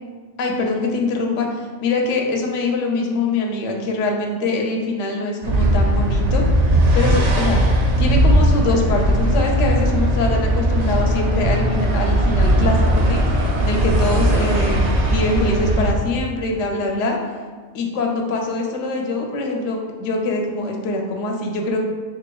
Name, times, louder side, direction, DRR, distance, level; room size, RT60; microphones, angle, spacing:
voice 1, 0.4-6.4 6.9-7.6 8.0-14.8 15.1-17.2 17.7-21.8, left 3 dB, 80° left, 1 dB, 0.9 m, -23 dB
sound 1, 5.4-15.9, right 1 dB, 85° right, 0.3 m, -18 dB
4.0 x 3.3 x 2.2 m, 1.4 s
omnidirectional pair, 1.3 m